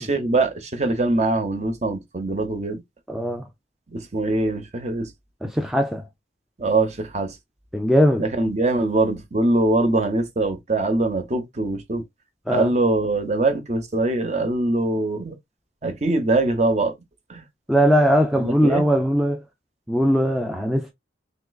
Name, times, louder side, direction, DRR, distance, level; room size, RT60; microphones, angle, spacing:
voice 1, 0.0-2.8 3.9-5.1 6.6-7.3 8.2-12.0 12.5-15.3 15.8-16.9 17.3-17.4 18.4-18.8, right 2 dB, 40° right, 0.7 m, -22 dB
voice 2, 3.1-3.5 5.4-6.0 7.7-8.3 12.5-12.7 17.7-19.4 19.9-20.9, equal, ahead, 0.4 m, -20 dB
3.7 x 3.1 x 2.2 m
head